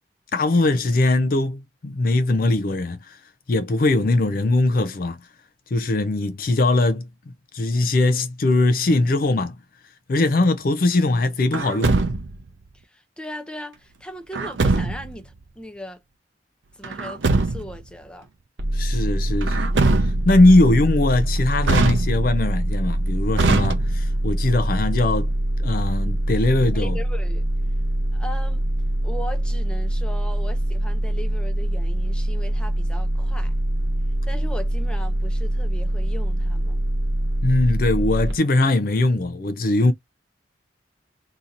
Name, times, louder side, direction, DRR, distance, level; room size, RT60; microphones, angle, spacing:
voice 1, 0.3-3.2 3.5-5.2 5.7-7.0 7.5-9.6 10.1-12.0 18.7-19.7 20.0-25.3 25.6-27.0 37.4-39.9, left 2 dB, 50° left, 0.4 m, -20 dB
Truck, 11.5-12.5 14.3-15.2 16.8-17.8 19.4-20.4 21.6-22.5 23.3-24.2, right 3 dB, 85° right, 0.6 m, -22 dB
voice 2, 12.7-16.0 16.7-18.3 26.7-27.5 28.1-28.6 29.0-33.5 34.3-36.8, left 1 dB, 5° left, 0.6 m, -38 dB
sound 1, 18.6-38.3, right 1 dB, 65° right, 0.9 m, -24 dB
2.8 x 2.7 x 3.8 m
head